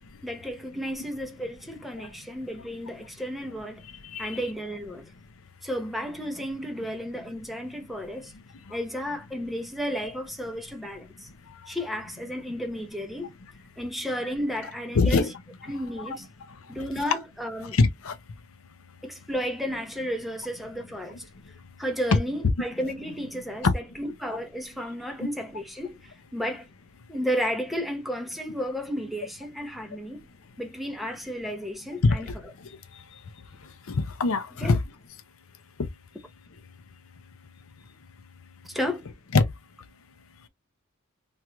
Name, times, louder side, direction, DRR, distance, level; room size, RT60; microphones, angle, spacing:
voice 1, 0.2-3.8 4.2-5.1 5.6-8.3 8.7-11.3 11.7-13.3 13.8-15.3 15.7-16.3 16.7-17.8 19.0-21.2 21.8-26.0 26.3-26.7 27.1-30.3 30.6-32.3 34.6-34.8 38.6-39.0, equal, ahead, 0.7 m, -33 dB
voice 2, 15.0-15.3 16.1-16.2 17.8-18.1 23.6-23.7 32.0-32.2 34.2-34.8 39.3-39.4, left 3 dB, 70° left, 0.6 m, -21 dB
3.1 x 3.0 x 2.3 m
head